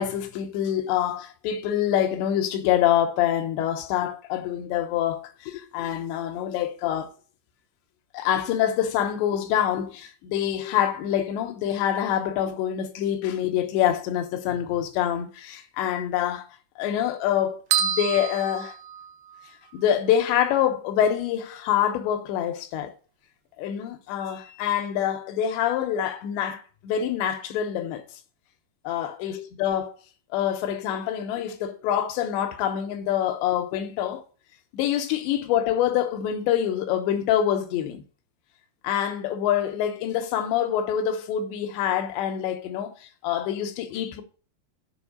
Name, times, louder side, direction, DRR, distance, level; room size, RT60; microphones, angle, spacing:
voice 1, 0.0-7.1 8.1-16.5 16.8-18.8 19.7-22.9 23.6-28.0 28.8-30.0 30.3-34.2 34.7-38.0 38.8-44.2, left 10 dB, 80° left, 3.0 m, -26 dB
sound 1, 17.7-19.5, right 8 dB, 80° right, 2.5 m, -28 dB
7.3 x 5.3 x 6.6 m
omnidirectional pair, 5.5 m